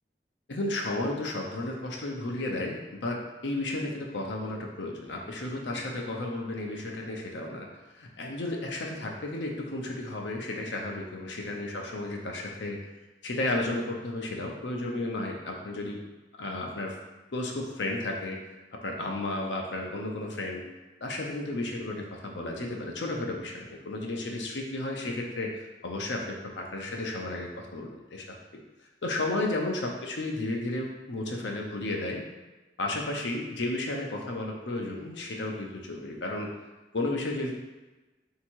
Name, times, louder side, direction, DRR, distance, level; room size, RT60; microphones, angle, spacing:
voice 1, 0.5-7.7 7.9-12.8 13.2-16.0 16.4-17.0 17.3-18.4 18.8-20.6 21.0-28.4 29.0-32.2 32.8-36.5 36.9-37.6, left 2 dB, 80° left, 0 dB, 0.7 m, -33 dB
3.6 x 2.9 x 4.5 m, 1.1 s
head